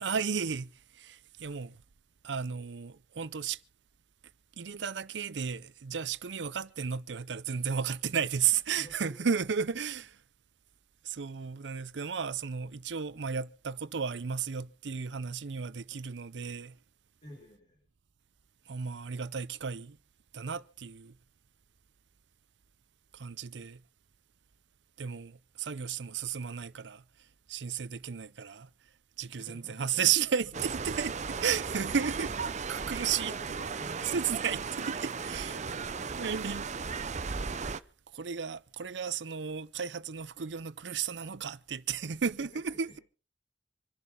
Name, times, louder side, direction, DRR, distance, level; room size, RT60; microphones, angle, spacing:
voice 1, 0.0-1.8 2.2-3.6 4.6-10.2 11.0-16.8 18.7-20.0 20.3-21.2 23.1-23.8 25.0-27.0 27.5-28.7 29.2-32.3 32.7-33.3 34.0-35.6 36.2-36.7 38.1-43.0, right 7 dB, 85° right, 0.6 m, -33 dB
voice 2, 8.8-9.3 17.2-17.8 29.4-30.0 31.3-31.4 33.1-34.1 35.4-36.3 42.4-43.0, left 1 dB, 40° left, 6.9 m, -51 dB
sound 1, 30.5-37.8, right 5 dB, 40° right, 0.7 m, -36 dB
26.5 x 11.0 x 3.8 m
head